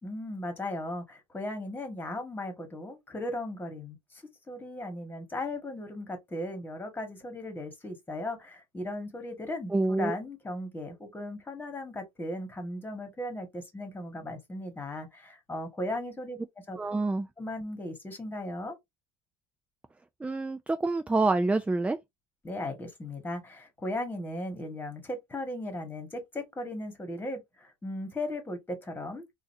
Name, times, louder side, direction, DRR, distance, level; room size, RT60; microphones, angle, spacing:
voice 1, 0.0-16.4 16.7-16.8 17.4-18.8 22.4-29.2, left 1 dB, 15° left, 1.7 m, -37 dB
voice 2, 9.7-10.1 16.8-17.3 20.2-22.0, right 3 dB, 10° right, 0.4 m, -27 dB
3.9 x 2.6 x 2.7 m
hypercardioid pair, 80°, 13 cm